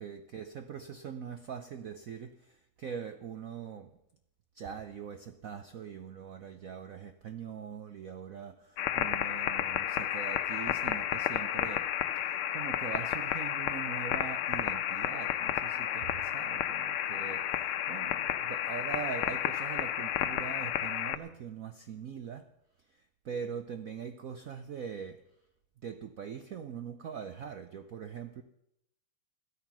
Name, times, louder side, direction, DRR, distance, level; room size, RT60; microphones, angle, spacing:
voice 1, 0.0-4.0 4.5-22.5 22.8-25.3 25.8-28.4, right 7 dB, 70° right, 9 dB, 0.8 m, -42 dB
sound 1, 8.8-21.2, left 11 dB, 80° left, 1.6 m, -32 dB
15.0 x 13.0 x 6.1 m, 0.79 s
omnidirectional pair, 2.3 m